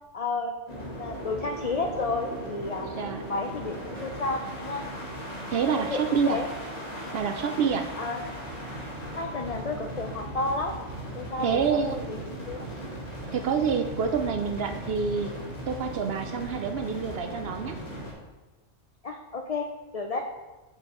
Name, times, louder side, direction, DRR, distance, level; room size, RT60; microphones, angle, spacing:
voice 1, 0.1-2.9 3.3-4.8 5.7-6.5 8.0-8.2 9.1-10.7 11.1-12.7 19.0-19.7 19.9-20.2, left 3 dB, 60° left, 2 dB, 0.4 m, -32 dB
sound 1, 0.7-18.1, right 1 dB, 30° left, 2.0 m, -38 dB
voice 2, 5.5-6.4 7.1-7.9 11.4-12.1 13.3-15.3 15.7-17.8, right 6 dB, 65° right, 6 dB, 0.7 m, -27 dB
8.9 x 4.1 x 4.2 m, 1.1 s
omnidirectional pair, 1.3 m